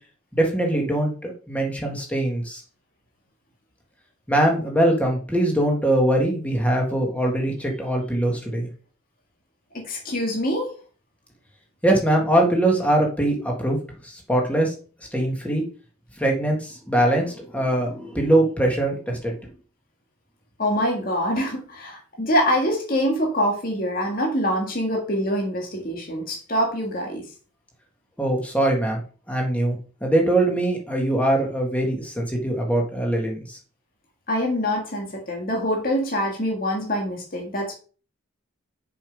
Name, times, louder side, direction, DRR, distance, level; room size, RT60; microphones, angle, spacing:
voice 1, 0.3-2.6 4.3-8.7 11.8-13.8 14.0-14.7 15.1-15.6 16.2-19.4 28.2-29.0 29.3-33.6, right 1 dB, 5° left, 0 dB, 1.9 m, -22 dB
voice 2, 9.7-10.7 20.6-27.3 34.3-37.7, equal, 45° left, 0 dB, 1.9 m, -25 dB
7.0 x 5.4 x 5.3 m, 0.38 s
head